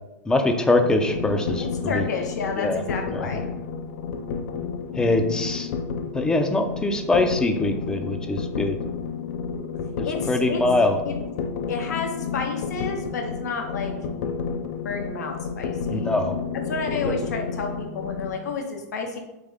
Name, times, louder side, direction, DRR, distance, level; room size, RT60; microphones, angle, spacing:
voice 1, 0.3-2.1 2.6-2.8 3.1-3.3 5.0-5.7 6.1-8.8 10.0-11.0 15.9-16.4 17.0-17.2, left 2 dB, 10° left, 6 dB, 0.4 m, -23 dB
sound 1, 0.8-18.3, left 6 dB, 60° left, 0.5 m, -31 dB
voice 2, 1.6-3.5 10.0-10.6 11.0-11.1 11.7-13.9 14.8-16.1 16.5-19.2, left 4 dB, 80° left, 3 dB, 0.8 m, -31 dB
3.6 x 3.4 x 3.4 m, 0.96 s
hypercardioid pair, 125°, 9 cm